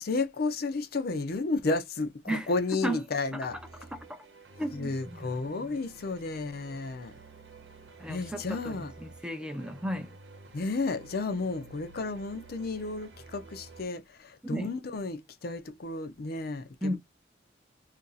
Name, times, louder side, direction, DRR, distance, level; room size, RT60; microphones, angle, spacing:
voice 1, 0.0-3.6 4.7-7.1 8.1-8.9 10.5-17.0, left 3 dB, 55° left, 0.5 m, -32 dB
sound 1, 3.5-13.8, right 3 dB, 70° right, 0.9 m, -51 dB
voice 2, 3.9-4.2 4.6-5.8 8.0-10.2 14.4-14.7 16.8-17.0, right 1 dB, 5° right, 0.5 m, -35 dB
2.8 x 2.6 x 3.9 m
head